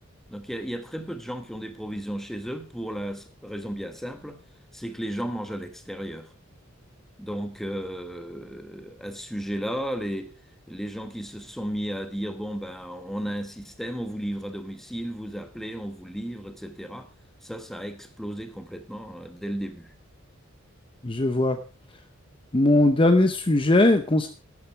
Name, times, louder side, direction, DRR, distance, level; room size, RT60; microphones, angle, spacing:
voice 1, 0.3-4.4 4.7-6.3 7.2-10.3 10.7-17.1 17.4-20.0, equal, ahead, 1.2 m, -34 dB
voice 2, 21.0-21.6 22.5-24.3, left 2 dB, 25° left, 0.7 m, -19 dB
11.5 x 10.5 x 4.6 m
head